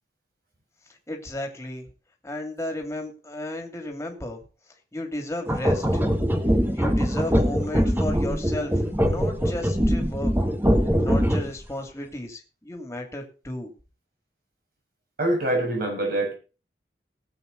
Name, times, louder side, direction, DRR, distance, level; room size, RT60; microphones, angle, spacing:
voice 1, 1.1-1.9 2.2-4.4 4.9-6.0 6.7-8.7 9.0-10.3 11.0-13.7, left 1 dB, 15° left, 2.8 m, -33 dB
sound 1, 5.5-11.6, equal, 10° right, 1.4 m, -22 dB
voice 2, 15.2-16.3, right 1 dB, 55° right, 6.4 m, -24 dB
19.0 x 8.1 x 4.1 m
head